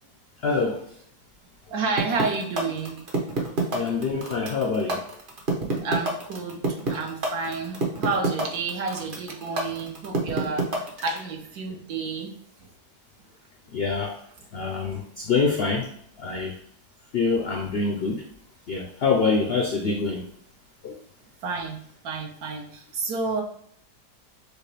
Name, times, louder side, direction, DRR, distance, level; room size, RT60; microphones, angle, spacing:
voice 1, 0.4-0.8 3.7-5.0 13.7-14.1 14.5-15.9 16.2-16.5 17.1-18.2 18.7-20.2 20.8-21.0, left 4 dB, 80° left, 2 dB, 0.5 m, -25 dB
voice 2, 1.7-3.0 5.8-12.3 21.4-23.4, right 4 dB, 70° right, 2 dB, 1.3 m, -30 dB
sound 1, 2.0-11.2, right 3 dB, 40° right, 0.9 m, -26 dB
6.2 x 2.5 x 3.2 m, 0.65 s
omnidirectional pair, 1.7 m